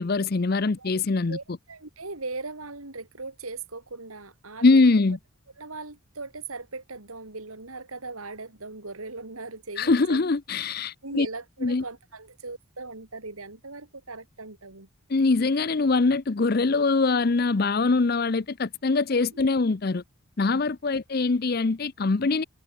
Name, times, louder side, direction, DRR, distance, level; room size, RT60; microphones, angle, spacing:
voice 1, 0.0-1.4 4.6-5.2 9.8-11.3 11.6-11.8 15.1-20.0 20.4-22.4, left 3 dB, 45° left, 0.6 m, -23 dB
voice 2, 1.3-4.8 5.6-10.2 11.0-14.9 19.5-19.6 20.8-20.9, right 3 dB, 85° right, 3.2 m, -39 dB
head